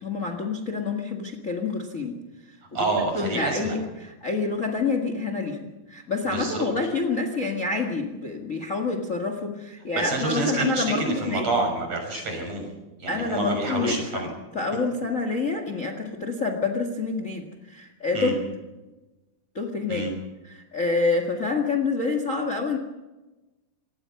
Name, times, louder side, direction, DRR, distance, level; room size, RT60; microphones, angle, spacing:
voice 1, 0.0-2.2 2.5-2.6 3.1-11.5 13.1-14.2 14.5-18.4 19.5-20.0 20.4-22.8, left 3 dB, 55° left, 6 dB, 0.8 m, -27 dB
voice 2, 2.7-3.8 6.2-6.6 10.0-12.6 13.0-14.3 18.1-18.3 19.9-20.1, right 2 dB, 40° right, 3 dB, 7.0 m, -27 dB
26.5 x 19.0 x 5.8 m, 1.1 s
omnidirectional pair, 4.7 m